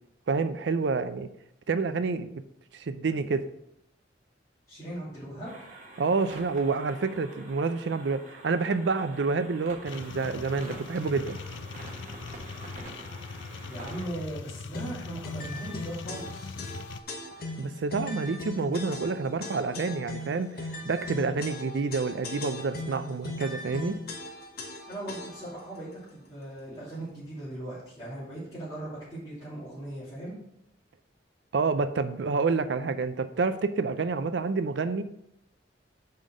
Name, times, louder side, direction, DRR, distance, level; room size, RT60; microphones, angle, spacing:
voice 1, 0.3-1.3 1.7-2.4 2.7-3.5 6.0-11.4 17.6-24.0 31.5-35.0, right 4 dB, 65° right, 11 dB, 0.5 m, -28 dB
voice 2, 4.7-5.6 12.5-13.0 13.6-16.5 24.9-30.3, right 1 dB, 20° left, -13 dB, 2.9 m, -39 dB
sound 1, 5.4-14.0, right 2 dB, 40° right, 1.4 m, -46 dB
sound 2, 9.9-17.0, left 4 dB, 80° left, 0.4 m, -41 dB
sound 3, 14.7-25.6, left 2 dB, 50° left, 1.0 m, -39 dB
5.7 x 5.1 x 6.3 m, 0.79 s
head